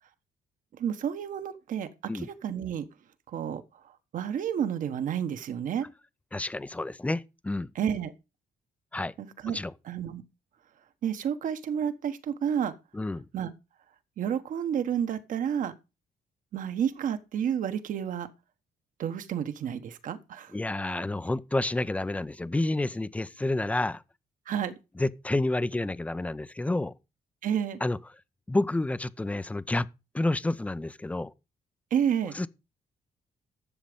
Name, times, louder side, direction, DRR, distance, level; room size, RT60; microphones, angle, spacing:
voice 1, 0.7-2.9 3.3-3.6 4.1-5.8 7.7-8.1 9.2-9.6 9.8-10.2 11.0-12.7 13.3-13.5 14.2-15.7 16.5-18.3 19.0-20.5 24.5-24.7 27.4-27.8 31.9-32.3, right 8 dB, 60° right, 1.3 m, -30 dB
voice 2, 6.3-7.7 8.9-9.1 9.5-9.7 12.9-13.3 20.5-24.0 25.0-26.9 27.8-28.0 28.5-29.9 30.1-31.3 32.4-32.5, left 2 dB, 10° left, 0.5 m, -29 dB
11.5 x 7.3 x 5.2 m
cardioid pair, 155°, 15 cm